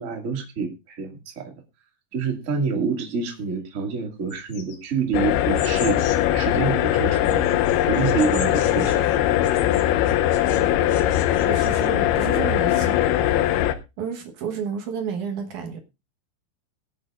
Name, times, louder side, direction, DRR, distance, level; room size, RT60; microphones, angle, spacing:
voice 1, 0.0-1.5 2.1-7.4 7.9-9.3, right 5 dB, 35° right, 1.2 m, -27 dB
sound 1, 4.3-6.4 6.8-10.6 10.9-11.9, left 6 dB, 70° left, 4.0 m, -40 dB
sound 2, 5.1-13.8, left 12 dB, 90° left, 3.2 m, -21 dB
voice 2, 11.5-13.2 14.0-15.8, right 7 dB, 65° right, 2.0 m, -31 dB
22.5 x 8.7 x 2.5 m
omnidirectional pair, 5.1 m